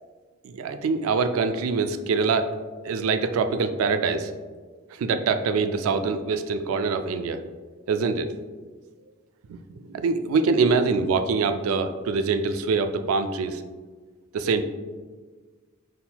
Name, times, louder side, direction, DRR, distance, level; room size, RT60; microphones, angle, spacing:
voice 1, 0.4-2.5 2.8-4.3 5.0-7.4 7.9-8.3 9.5-13.6 14.3-14.6, right 4 dB, 80° right, 9 dB, 0.3 m, -24 dB
4.1 x 3.7 x 2.2 m, 1.4 s
head